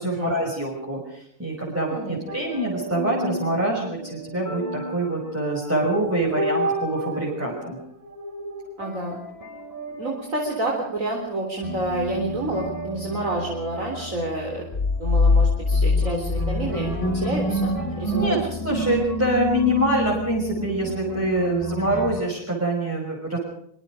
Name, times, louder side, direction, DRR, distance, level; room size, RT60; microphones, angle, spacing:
voice 1, 0.0-7.8 18.1-23.4, right 1 dB, 5° right, -4 dB, 5.7 m, -25 dB
sound 1, 2.3-5.7 5.9-10.9 11.2-11.3 11.6-22.2, right 1 dB, 10° left, 5.9 m, -31 dB
voice 2, 8.8-9.2 9.9-14.6 15.0-18.7, right 1 dB, 45° right, 0 dB, 4.2 m, -29 dB
sound 2, 14.7-17.6, left 4 dB, 40° left, 0.8 m, -22 dB
25.0 x 23.5 x 5.1 m, 0.68 s
omnidirectional pair, 2.0 m